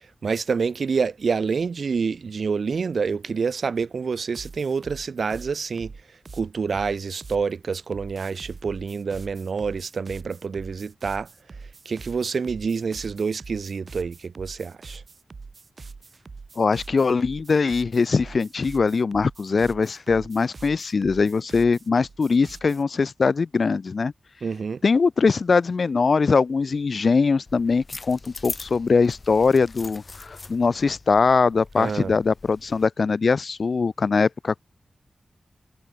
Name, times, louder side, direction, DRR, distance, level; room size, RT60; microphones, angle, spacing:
voice 1, 0.2-5.9 6.4-11.3 11.9-15.0 24.4-24.8 31.8-32.1, right 5 dB, 70° right, 0.3 m, -27 dB
sound 1, 4.3-7.5 7.9-22.8, right 4 dB, 55° right, 1.5 m, -43 dB
voice 2, 16.6-24.1 24.8-34.6, left 4 dB, 60° left, 0.5 m, -21 dB
sound 2, 27.5-32.9, left 3 dB, 40° left, 1.6 m, -41 dB
wide cardioid pair, 105°, 0 cm